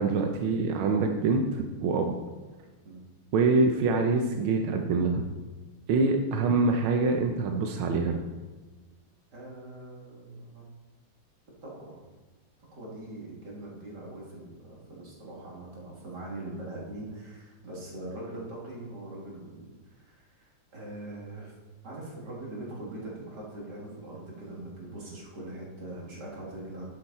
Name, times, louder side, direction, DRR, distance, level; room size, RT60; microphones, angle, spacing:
voice 1, 0.0-2.1 3.3-5.2 5.9-8.2, right 3 dB, 85° right, 3 dB, 1.6 m, -25 dB
voice 2, 9.3-10.6 11.6-12.0 12.7-21.5 21.8-26.8, right 1 dB, 55° right, -5 dB, 3.5 m, -42 dB
10.5 x 9.3 x 4.3 m, 1.2 s
omnidirectional pair, 2.2 m